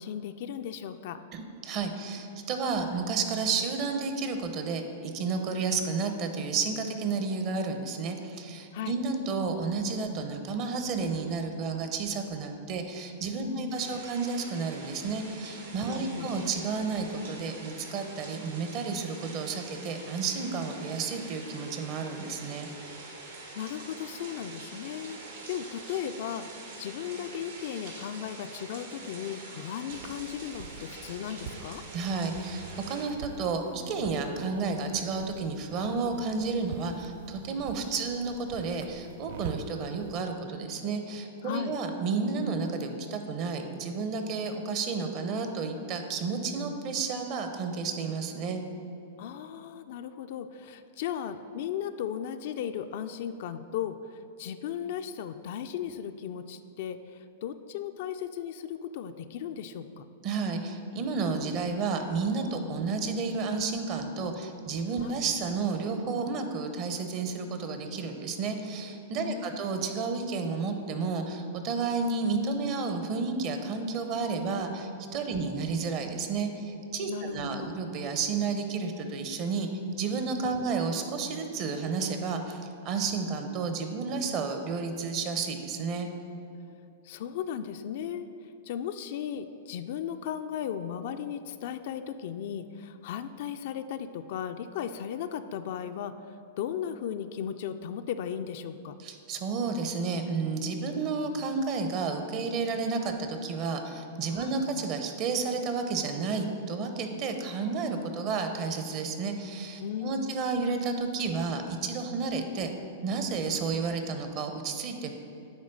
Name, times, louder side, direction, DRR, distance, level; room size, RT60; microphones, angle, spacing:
voice 1, 0.0-1.2 8.7-9.0 13.4-14.1 15.8-16.4 23.1-23.3 23.5-25.2 25.5-26.5 26.8-31.8 41.4-41.8 49.2-60.0 65.0-65.2 69.2-69.8 75.3-75.5 77.1-77.7 80.4-80.7 87.0-88.3 88.6-98.9 104.3-104.6 109.8-110.4, left 9 dB, 60° left, 9 dB, 0.3 m, -36 dB
voice 2, 1.3-22.7 31.9-48.6 60.2-79.7 80.0-86.1 99.0-112.7 113.0-115.1, right 4 dB, 45° right, 6 dB, 0.7 m, -31 dB
sound 1, 13.7-33.1, right 2 dB, 80° right, 1.5 m, -45 dB
sound 2, 29.9-40.2, right 7 dB, 65° right, 0.3 m, -46 dB
8.8 x 3.1 x 5.4 m, 2.7 s
hypercardioid pair, 125°, 0 cm